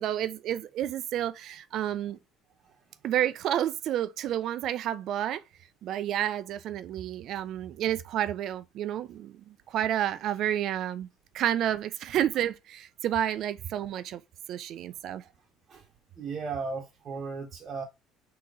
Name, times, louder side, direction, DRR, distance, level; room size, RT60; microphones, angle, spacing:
voice 1, 0.0-2.2 3.0-5.4 5.8-11.1 11.3-14.2 14.5-15.2, right 11 dB, 60° right, 0.3 m, -30 dB
voice 2, 16.2-17.8, right 4 dB, 40° right, 0.9 m, -35 dB
3.9 x 2.8 x 4.6 m
cardioid pair, 110°, 0 cm